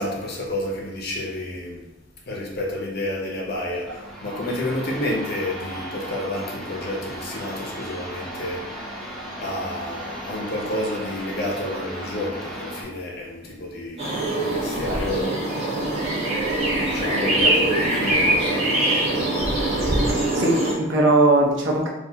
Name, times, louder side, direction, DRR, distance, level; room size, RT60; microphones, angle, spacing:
voice 1, 0.0-1.8 2.3-8.7 9.4-15.3 16.8-19.3, left 1 dB, 55° left, -1 dB, 0.9 m, -30 dB
sound 1, 3.7-12.8, right 1 dB, ahead, 0.9 m, -36 dB
sound 2, 14.0-20.7, right 1 dB, 30° right, 1.6 m, -22 dB
voice 2, 20.1-21.9, right 2 dB, 70° right, -1 dB, 0.9 m, -20 dB
4.4 x 2.6 x 4.0 m, 0.93 s
head